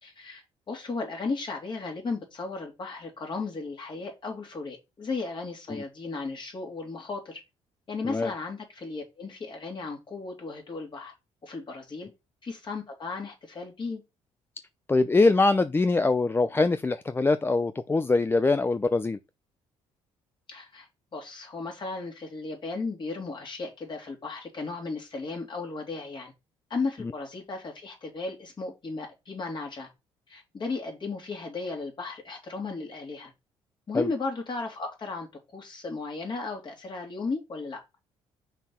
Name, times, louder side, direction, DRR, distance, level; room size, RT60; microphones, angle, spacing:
voice 1, 0.0-7.4 7.9-11.1 11.4-12.1 12.4-14.0 20.5-26.3 26.7-29.9 30.3-33.3 33.9-35.3 35.5-37.8, left 3 dB, 40° left, 3.2 m, -35 dB
voice 2, 14.9-19.2 33.9-34.1, left 3 dB, 20° left, 0.5 m, -23 dB
5.7 x 4.6 x 5.6 m
supercardioid pair, 75°, 12 cm